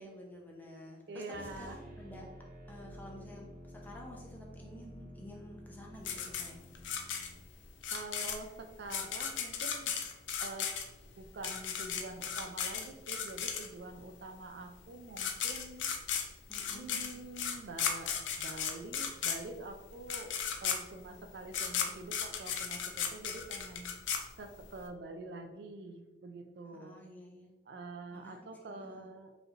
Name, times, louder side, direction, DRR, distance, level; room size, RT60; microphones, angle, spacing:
voice 1, 0.0-2.3 2.7-6.7 16.5-17.2 26.7-27.5 28.1-29.1, left 1 dB, 10° left, -2 dB, 0.6 m, -51 dB
voice 2, 1.1-1.8 7.9-10.0 10.4-10.7 11.2-15.9 16.7-20.3 20.6-23.9 24.4-27.0 27.7-29.4, right 2 dB, 65° right, 6 dB, 0.4 m, -46 dB
sound 1, 1.3-7.4, equal, 45° right, 1.1 m, -51 dB
sound 2, 6.1-14.0 14.8-14.9 15.1-24.8, left 7 dB, 80° left, 0.5 m, -36 dB
4.9 x 3.2 x 2.5 m, 1.1 s
head